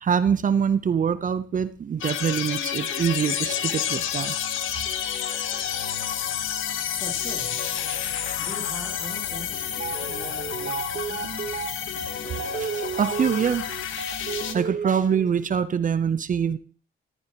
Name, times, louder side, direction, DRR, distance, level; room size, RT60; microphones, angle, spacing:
voice 1, 0.0-4.4 12.6-13.7 14.5-16.6, right 7 dB, 40° right, 14 dB, 0.7 m, -24 dB
sound 1, 2.0-14.5, left 9 dB, 80° left, 1.4 m, -30 dB
voice 2, 6.9-7.6 8.4-9.7 10.1-11.5, left 1 dB, 15° left, 0 dB, 3.4 m, -41 dB
sound 2, 9.7-15.4, right 6 dB, 60° right, 3.0 m, -33 dB
14.5 x 13.0 x 3.0 m, 0.41 s
cardioid pair, 90°, 20 cm